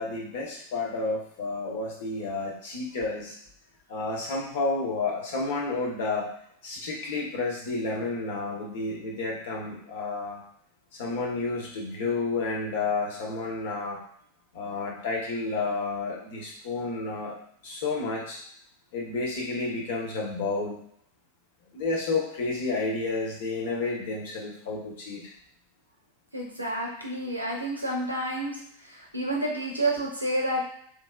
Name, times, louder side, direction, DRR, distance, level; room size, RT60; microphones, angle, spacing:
voice 1, 0.0-3.4 3.9-6.3 6.6-10.4 10.9-14.0 14.5-17.4 17.6-18.4 18.9-20.8 21.7-25.2, left 3 dB, 55° left, -2 dB, 1.0 m, -31 dB
voice 2, 26.3-28.6 28.8-30.6, right 1 dB, 85° right, -1 dB, 0.7 m, -29 dB
3.3 x 2.6 x 2.4 m, 0.66 s
figure-of-eight pair, 90°, 0 cm